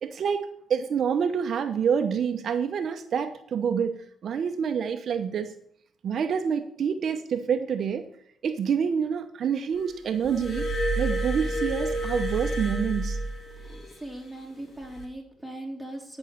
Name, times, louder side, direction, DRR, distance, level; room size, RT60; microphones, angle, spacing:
voice 1, 0.0-5.5 6.0-8.1 8.4-10.7 11.0-13.2, right 7 dB, 60° right, 8 dB, 0.8 m, -27 dB
Glass, 10.3-13.9 14.8-15.0, right 1 dB, 35° left, 2.8 m, -29 dB
voice 2, 13.6-16.2, right 1 dB, ahead, 1 dB, 3.0 m, -39 dB
11.0 x 6.2 x 6.7 m, 0.70 s
cardioid pair, 90°, 0 cm